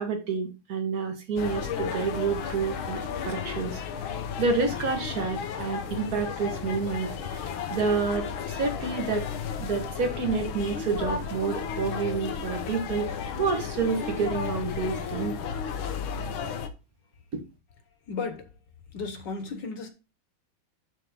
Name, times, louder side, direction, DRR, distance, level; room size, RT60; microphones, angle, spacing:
voice 1, 0.0-3.8 4.4-9.3 9.6-13.1 13.4-15.4 17.3-17.4, right 5 dB, 50° right, 2.0 m, -29 dB
sound 1, 1.4-16.7, left 7 dB, 85° left, 1.7 m, -33 dB
voice 2, 18.1-18.4 18.9-19.9, left 4 dB, 65° left, 1.8 m, -34 dB
11.0 x 4.1 x 3.6 m
omnidirectional pair, 2.2 m